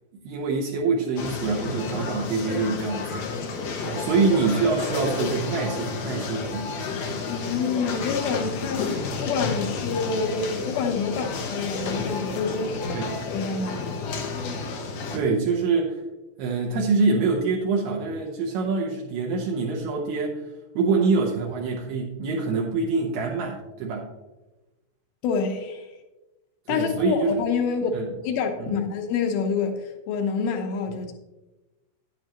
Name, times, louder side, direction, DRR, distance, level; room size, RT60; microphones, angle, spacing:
voice 1, 0.3-3.3 3.8-6.7 12.9-13.2 15.1-16.0 16.4-20.5 20.8-24.1 26.7-27.4 27.9-28.1 28.6-28.8, right 4 dB, 75° right, -2 dB, 2.9 m, -25 dB
sound 1, 1.2-15.2, left 4 dB, 90° left, 1.5 m, -31 dB
voice 2, 7.3-8.9 9.2-12.7 13.2-14.0 25.2-25.9 26.7-31.1, left 5 dB, 70° left, 4 dB, 2.7 m, -27 dB
10.5 x 9.7 x 3.0 m, 1.1 s
omnidirectional pair, 4.9 m